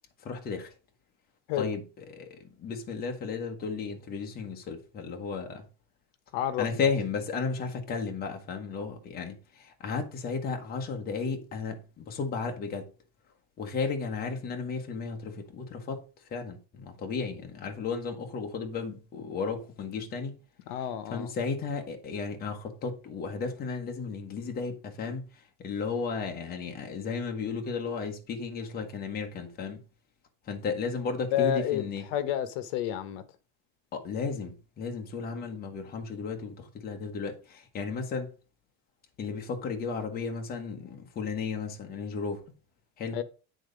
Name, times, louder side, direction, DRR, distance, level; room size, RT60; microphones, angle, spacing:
voice 1, 0.2-0.7 1.6-5.7 6.6-12.9 13.6-16.0 16.3-20.4 21.1-29.8 30.5-32.0 33.9-38.3 39.2-42.4 43.0-43.2, left 5 dB, 25° left, 1.2 m, -34 dB
voice 2, 6.3-6.7 20.7-21.3 31.3-31.9 32.1-33.2 43.1-43.2, left 11 dB, 65° left, 1.1 m, -29 dB
8.8 x 4.0 x 5.1 m
cardioid pair, 175°, 37 cm